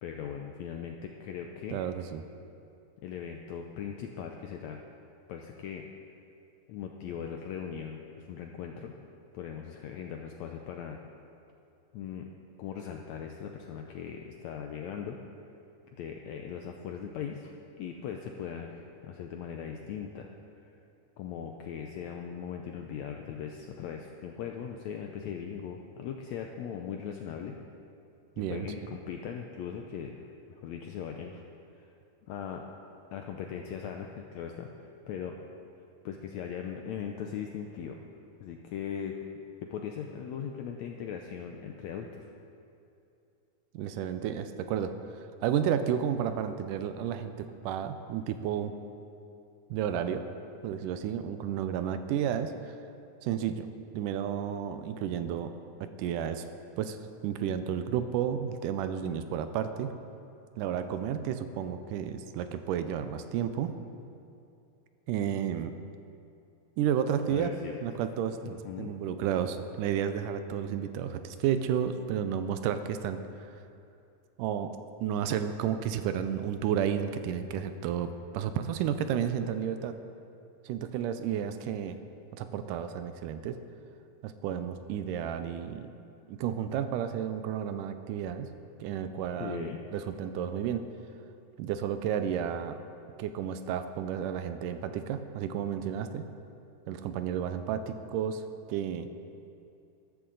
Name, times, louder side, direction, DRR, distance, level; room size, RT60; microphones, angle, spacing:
voice 1, 0.0-1.8 3.0-4.8 5.3-5.9 6.7-8.9 9.3-11.0 11.9-12.3 12.6-15.2 16.0-17.5 17.8-20.3 21.2-27.6 28.4-30.2 30.5-31.4 31.8-31.9 32.3-32.7 33.1-35.4 36.0-38.0 38.4-39.2 39.6-42.2 67.3-68.1 68.4-68.9 89.4-89.8, left 8 dB, 85° left, 3 dB, 1.6 m, -39 dB
voice 2, 1.7-2.2 28.4-28.7 43.7-44.9 45.4-48.7 49.7-50.3 50.6-52.7 53.2-53.7 53.9-55.5 55.8-56.4 56.8-57.0 57.2-59.9 60.6-63.7 65.1-65.7 66.8-67.5 67.8-73.2 74.4-80.0 80.7-82.0 82.3-83.6 84.2-85.9 86.3-88.5 88.8-90.9 91.6-92.8 93.2-96.2 96.9-98.4 98.7-99.1, right 9 dB, 80° right, 9 dB, 2.1 m, -32 dB
14.0 x 12.5 x 3.9 m, 2.6 s
omnidirectional pair, 3.8 m